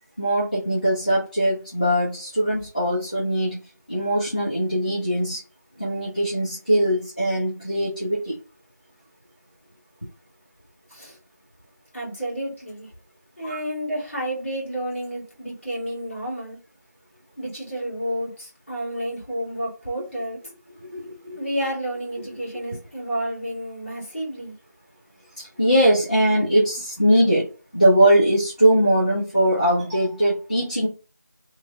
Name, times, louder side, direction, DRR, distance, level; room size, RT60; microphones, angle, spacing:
voice 1, 0.2-3.6 3.9-5.4 5.8-8.4 13.4-13.6 20.9-21.4 25.4-27.5 27.7-30.9, right 1 dB, 25° left, -7 dB, 0.6 m, -21 dB
voice 2, 11.9-12.9 13.4-16.6 17.4-20.4 21.4-24.5, right 1 dB, 40° left, -5 dB, 1.7 m, -30 dB
3.1 x 2.1 x 3.3 m, 0.33 s
figure-of-eight pair, 175°, 10 cm